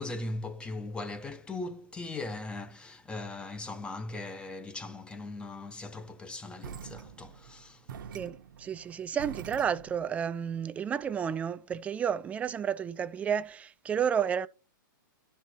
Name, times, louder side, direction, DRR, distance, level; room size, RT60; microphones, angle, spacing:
voice 1, 0.0-7.9, left 2 dB, 10° left, 0.8 m, -39 dB
sound 1, 6.6-10.1, right 7 dB, 70° right, 1.0 m, -45 dB
voice 2, 8.1-14.5, right 8 dB, 10° right, 0.4 m, -31 dB
12.5 x 4.5 x 4.3 m
hypercardioid pair, 150°, 11 cm